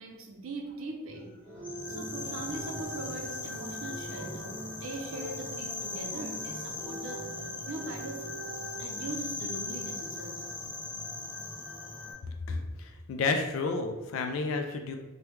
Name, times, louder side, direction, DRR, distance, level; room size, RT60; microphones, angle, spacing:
voice 1, 0.0-1.4 1.9-7.3 7.7-8.4 8.8-10.4, right 2 dB, 70° right, 1 dB, 0.5 m, -41 dB
sound 1, 1.4-9.2, right 2 dB, 20° right, 1.2 m, -44 dB
sound 2, 1.6-12.1, left 3 dB, 5° left, 0.5 m, -39 dB
voice 2, 12.5-15.0, left 3 dB, 70° left, 5 dB, 0.3 m, -31 dB
3.2 x 2.2 x 3.0 m, 1.1 s
head